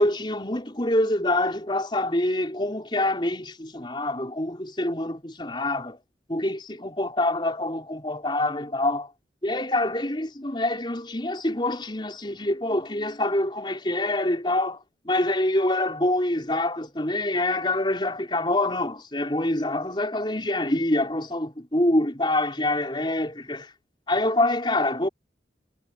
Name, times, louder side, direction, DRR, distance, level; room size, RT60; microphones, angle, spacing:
voice 1, 0.0-6.0 6.3-9.1 9.4-23.7 24.1-25.1, left 1 dB, 25° left, 5.1 m, -26 dB
head